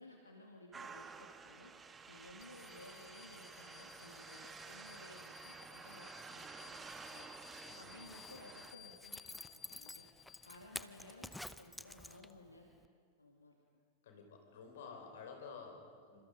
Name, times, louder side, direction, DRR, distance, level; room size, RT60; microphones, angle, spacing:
voice 1, 0.0-1.7 2.1-7.3 7.8-10.1 10.4-12.7 13.2-13.6, left 1 dB, 80° left, 1 dB, 2.1 m, -57 dB
sound 1, 0.7-8.7, right 5 dB, 15° right, 1.2 m, -52 dB
sound 2, 2.4-10.9, left 12 dB, 35° left, 1.1 m, -59 dB
Zipper (clothing), 7.9-12.5 12.8-12.9, left 1 dB, 5° left, 0.8 m, -50 dB
voice 2, 14.0-16.2, left 5 dB, 60° left, 3 dB, 5.3 m, -51 dB
28.0 x 26.5 x 5.3 m, 2.1 s
figure-of-eight pair, 90°, 0 cm